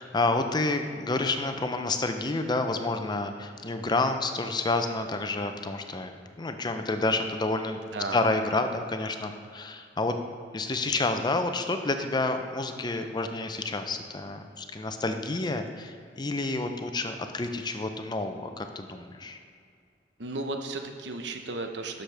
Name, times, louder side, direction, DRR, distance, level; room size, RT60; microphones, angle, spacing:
voice 1, 0.0-7.8 8.1-10.2 10.5-19.4, left 2 dB, 25° left, 7 dB, 0.5 m, -29 dB
voice 2, 7.9-8.3 20.2-22.0, right 2 dB, 75° right, 5 dB, 0.8 m, -34 dB
12.0 x 6.5 x 3.4 m, 2.3 s
head